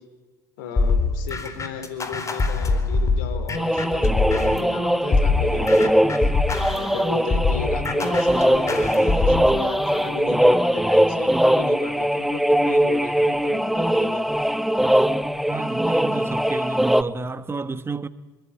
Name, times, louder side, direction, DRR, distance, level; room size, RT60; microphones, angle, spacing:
voice 1, 0.6-6.0 6.6-14.3, left 7 dB, 75° left, 3.6 m, -35 dB
sound 1, 0.8-4.7 5.1-9.5, left 3 dB, 30° left, 4.4 m, -23 dB
sound 2, 3.5-17.0, equal, ahead, 1.1 m, -21 dB
voice 2, 15.5-18.1, right 3 dB, 25° right, 1.5 m, -30 dB
25.5 x 15.5 x 8.7 m
hypercardioid pair, 60°, 10 cm